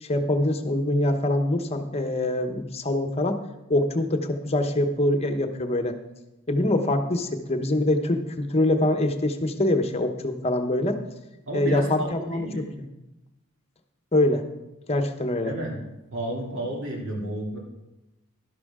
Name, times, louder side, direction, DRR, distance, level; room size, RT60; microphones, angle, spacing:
voice 1, 0.0-3.4 3.7-6.0 6.5-11.0 11.5-12.6 14.1-14.4 14.9-15.5, left 1 dB, 30° left, 6 dB, 0.9 m, -24 dB
voice 2, 11.5-12.6 15.4-15.8 16.1-17.6, right 1 dB, 60° right, -1 dB, 2.7 m, -32 dB
12.0 x 12.0 x 3.7 m, 0.96 s
head